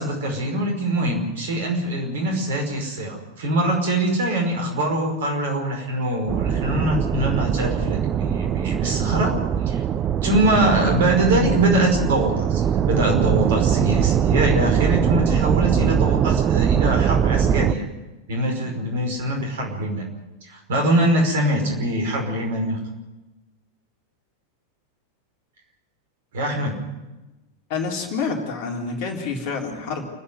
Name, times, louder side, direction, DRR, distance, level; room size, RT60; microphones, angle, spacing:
voice 1, 0.0-9.4 9.7-9.8 10.2-17.8 18.3-20.0 20.4-22.8 26.3-26.8, right 1 dB, 60° right, 2 dB, 5.3 m, -23 dB
sound 1, 6.3-17.7, right 9 dB, 30° right, 0.7 m, -21 dB
voice 2, 27.7-30.1, left 4 dB, 45° left, 2 dB, 3.7 m, -28 dB
29.5 x 9.9 x 9.6 m, 1.1 s
figure-of-eight pair, 90°, 0 cm